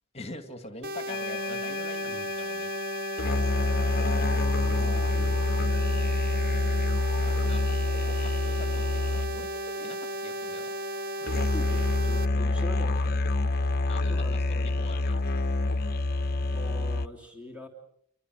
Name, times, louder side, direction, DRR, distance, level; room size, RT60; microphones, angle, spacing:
voice 1, 0.1-2.7 7.2-10.8 13.8-15.2, left 2 dB, 30° left, 8 dB, 2.3 m, -44 dB
sound 1, 0.8-12.2, right 1 dB, 50° right, 1.6 m, -35 dB
sound 2, 1.1-17.1, left 2 dB, 45° left, 0.9 m, -28 dB
voice 2, 2.0-2.3 4.4-5.4 11.2-13.2 14.1-14.4 16.5-17.7, left 1 dB, 5° right, 2 dB, 3.2 m, -43 dB
30.0 x 23.0 x 6.5 m, 0.71 s
head